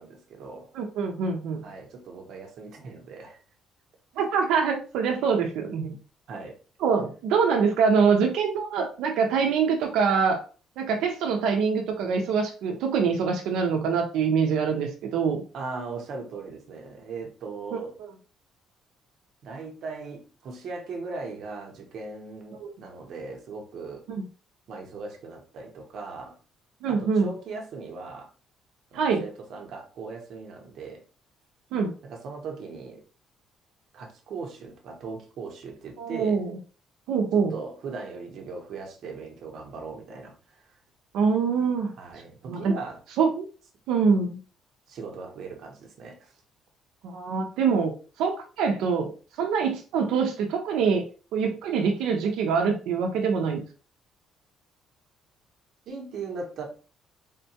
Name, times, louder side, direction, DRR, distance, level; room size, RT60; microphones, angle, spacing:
voice 1, 0.0-0.7 1.6-3.4 4.2-4.3 6.3-6.6 15.5-17.9 19.4-24.0 24.7-26.4 26.9-28.3 28.9-31.0 32.0-33.0 33.9-36.4 37.3-40.6 42.0-43.0 44.9-46.3 55.9-56.7, right 4 dB, 50° right, 0.8 m, -39 dB
voice 2, 0.7-1.6 4.2-6.0 6.8-10.4 10.8-15.4 17.7-17.8 22.6-22.7 24.1-24.2 26.8-27.3 28.9-29.2 31.7-31.9 36.0-36.5 37.1-37.5 41.1-41.9 42.5-42.8 43.2-43.5 43.9-44.4 47.0-47.9 48.2-49.1 49.4-51.0 51.3-53.6, right 5 dB, 85° right, 0.5 m, -24 dB
3.6 x 2.2 x 2.7 m
cardioid pair, 165°, 0 cm